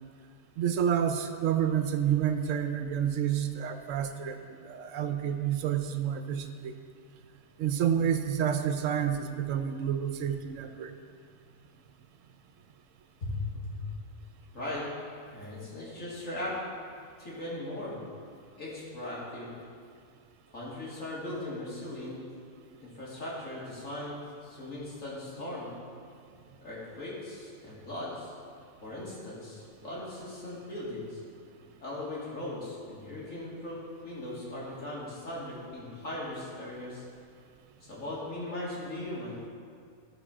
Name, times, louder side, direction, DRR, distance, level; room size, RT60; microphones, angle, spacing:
voice 1, 0.6-6.7 7.6-10.9, right 9 dB, 75° right, 8 dB, 0.9 m, -29 dB
voice 2, 13.2-13.8 14.5-14.9 15.3-16.6 17.2-18.0 18.6-19.5 20.5-22.2 22.8-25.7 26.6-28.3 28.8-31.2 31.8-37.0 37.8-39.5, left 1 dB, 75° left, -7 dB, 2.8 m, -38 dB
13.5 x 4.7 x 5.0 m, 2.2 s
omnidirectional pair, 1.4 m